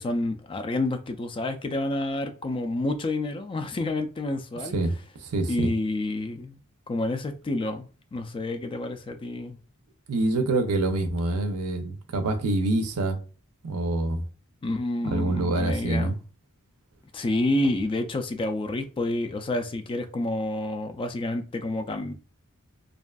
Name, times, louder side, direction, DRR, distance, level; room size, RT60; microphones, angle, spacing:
voice 1, 0.0-4.8 5.5-6.6 6.9-7.8 8.1-9.6 14.6-16.2 17.1-22.1, left 2 dB, 25° left, 0.3 m, -29 dB
voice 2, 5.2-5.7 10.1-13.2 13.6-14.2 15.0-16.2, right 2 dB, 85° right, 0.5 m, -26 dB
2.5 x 2.3 x 2.2 m
head